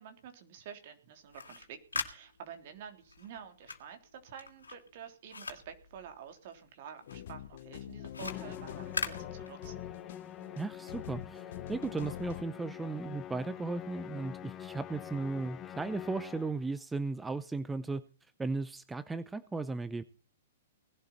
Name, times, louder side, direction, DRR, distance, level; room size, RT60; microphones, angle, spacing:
voice 1, 0.0-9.8, right 8 dB, 50° right, 6 dB, 3.4 m, -49 dB
sound 1, 1.2-6.7 7.0-10.0, left 4 dB, 85° left, 2.6 m, -42 dB
sound 2, 7.0-12.4, left 11 dB, 55° left, 1.1 m, -45 dB
Musical instrument, 8.2-16.7, left 10 dB, 25° left, 0.8 m, -46 dB
voice 2, 10.6-18.0 18.4-20.0, right 3 dB, 10° right, 14 dB, 0.7 m, -36 dB
19.5 x 12.0 x 4.2 m, 0.37 s
hypercardioid pair, 115°, 0 cm